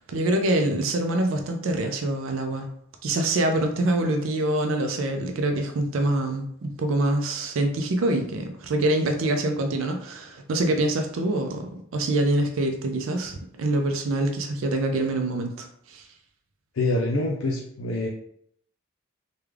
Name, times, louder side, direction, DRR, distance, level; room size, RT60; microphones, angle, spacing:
voice 1, 0.0-2.7 3.0-16.0, right 1 dB, 75° right, 4 dB, 0.4 m, -25 dB
voice 2, 16.7-18.1, left 2 dB, 70° left, -2 dB, 0.5 m, -25 dB
3.4 x 2.2 x 3.3 m, 0.69 s
head